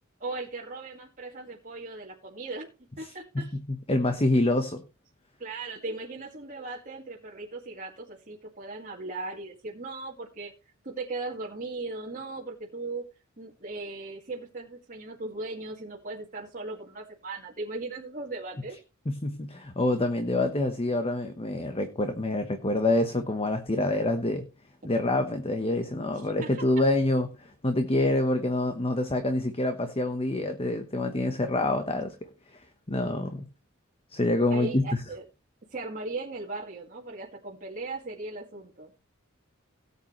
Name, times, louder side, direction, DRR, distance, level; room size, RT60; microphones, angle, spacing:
voice 1, 0.2-3.5 5.4-10.5 10.8-13.1 13.4-18.8 26.4-26.6 34.5-35.2 35.7-38.9, right 3 dB, 40° right, 2.0 m, -38 dB
voice 2, 3.0-3.6 3.9-4.8 19.1-24.4 24.8-32.2 32.5-32.6 32.9-33.4 34.1-34.9, left 2 dB, 25° left, 1.1 m, -26 dB
17.5 x 8.4 x 3.1 m
head